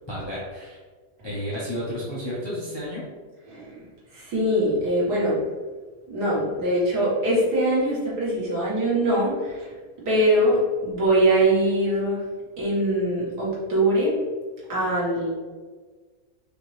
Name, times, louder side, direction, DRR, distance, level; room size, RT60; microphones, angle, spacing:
voice 1, 0.1-0.8 1.2-3.0, equal, 25° left, -8 dB, 0.7 m, -31 dB
voice 2, 3.5-3.9 4.1-5.4 6.1-9.7 10.1-12.2 12.6-14.2 14.7-15.3, right 1 dB, 90° right, -6 dB, 2.1 m, -22 dB
5.0 x 3.1 x 3.2 m, 1.4 s
omnidirectional pair, 1.7 m